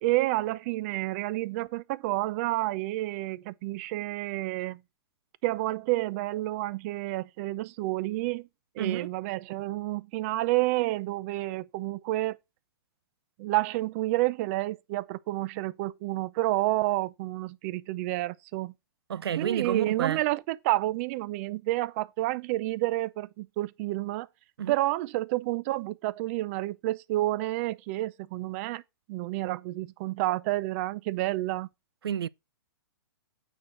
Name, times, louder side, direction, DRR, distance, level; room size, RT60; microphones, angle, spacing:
voice 1, 0.0-4.8 5.4-8.5 8.8-12.4 13.4-18.7 19.4-24.3 24.7-28.8 29.1-31.7, right 18 dB, 35° right, 0.6 m, -29 dB
voice 2, 8.8-9.1 19.1-20.2 24.6-24.7 32.0-32.3, right 9 dB, 90° right, 0.6 m, -30 dB
9.0 x 4.4 x 5.9 m
hypercardioid pair, 150°, 13 cm